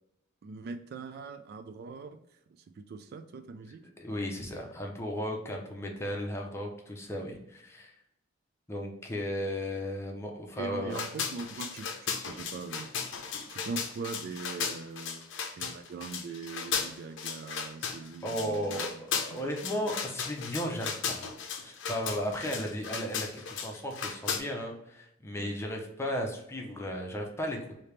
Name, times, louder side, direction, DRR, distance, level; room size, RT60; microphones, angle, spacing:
voice 1, 0.4-2.2 2.8-3.8 10.6-12.9 13.5-15.3 15.6-19.0 19.3-19.4 22.4-22.6 25.4-25.5, right 4 dB, 50° right, 9 dB, 0.3 m, -41 dB
voice 2, 3.8-8.0 8.7-11.0 18.2-21.2 21.6-27.7, equal, 15° left, 0 dB, 0.6 m, -35 dB
sound 1, 10.9-24.4, left 6 dB, 65° left, 0.6 m, -36 dB
3.3 x 2.8 x 3.2 m, 0.82 s
head